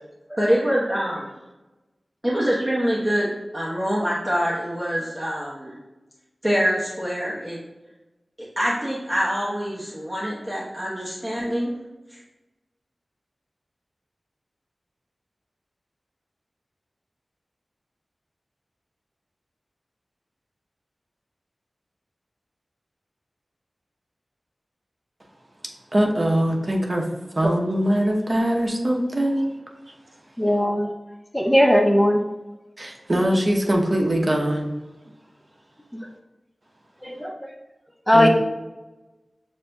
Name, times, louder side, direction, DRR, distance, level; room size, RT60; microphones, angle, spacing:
voice 1, 0.4-1.3 2.2-3.3 3.5-5.7 6.4-7.6 8.6-11.7 12.1-12.2, equal, 15° right, -6 dB, 1.0 m, -25 dB
voice 2, 25.9-27.0 27.3-29.5 32.8-34.7 38.1-38.3, right 1 dB, 40° right, 0 dB, 0.8 m, -22 dB
voice 3, 30.4-30.9 31.3-32.2 37.0-37.3 38.1-38.3, left 1 dB, 5° left, 2 dB, 0.4 m, -18 dB
6.9 x 2.6 x 2.3 m, 1.1 s
cardioid pair, 45°, 0 cm